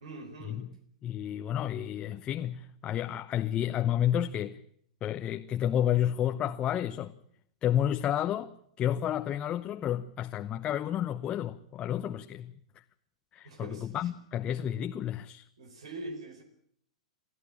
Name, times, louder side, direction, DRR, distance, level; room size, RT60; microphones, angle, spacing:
voice 1, 0.0-0.6 13.4-13.9 15.6-16.4, right 2 dB, 70° right, 4.5 m, -43 dB
voice 2, 1.0-4.6 5.0-7.1 7.6-12.6 13.3-15.5, left 10 dB, 30° left, 0.9 m, -31 dB
23.5 x 14.5 x 10.0 m
figure-of-eight pair, 100°, 3 cm